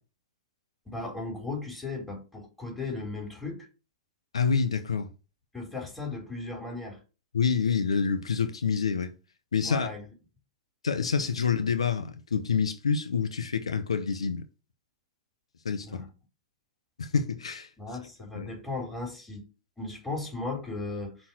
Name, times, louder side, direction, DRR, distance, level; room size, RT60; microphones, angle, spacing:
voice 1, 0.9-3.7 5.5-7.0 9.6-10.1 11.2-11.3 15.8-16.1 17.8-19.4 19.8-21.2, left 3 dB, 5° left, 4.1 m, -36 dB
voice 2, 4.3-5.1 7.3-9.1 9.5-9.9 10.8-14.5 15.6-16.0 17.0-17.7 18.4-18.5, left 6 dB, 90° left, 0.8 m, -27 dB
5.5 x 4.5 x 6.1 m
hypercardioid pair, 115°, 3 cm